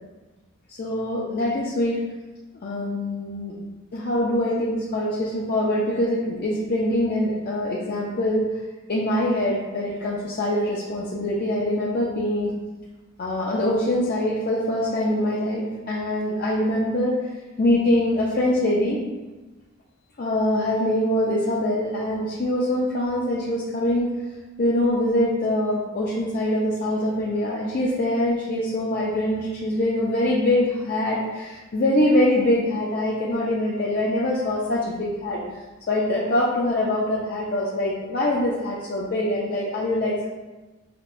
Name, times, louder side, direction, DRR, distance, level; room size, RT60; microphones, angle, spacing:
voice 1, 0.8-2.0 2.6-3.5 3.9-8.5 8.9-12.5 13.2-17.1 17.6-19.0 20.2-24.1 24.6-35.4 35.9-40.3, left 1 dB, 45° left, -5 dB, 0.5 m, -24 dB
5.8 x 2.2 x 2.5 m, 1.2 s
head